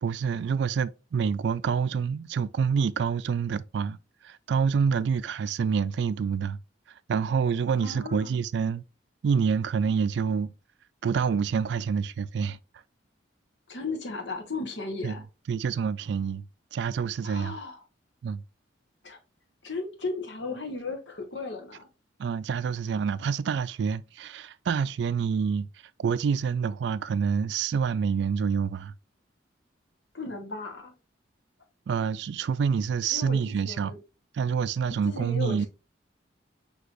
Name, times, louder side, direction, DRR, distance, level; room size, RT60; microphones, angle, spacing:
voice 1, 0.0-4.0 4.2-6.6 7.1-8.8 9.2-10.5 11.0-12.6 15.0-15.2 15.5-16.4 16.7-17.6 18.2-18.4 22.2-25.7 26.0-28.9 31.9-34.0 34.3-35.7, right 6 dB, 60° right, 0.3 m, -27 dB
voice 2, 7.8-8.3 13.7-15.2 17.2-17.8 19.0-19.2 19.6-21.9 30.1-30.9 33.1-34.0 34.9-35.7, left 3 dB, 65° left, 1.1 m, -35 dB
6.2 x 2.9 x 2.4 m
head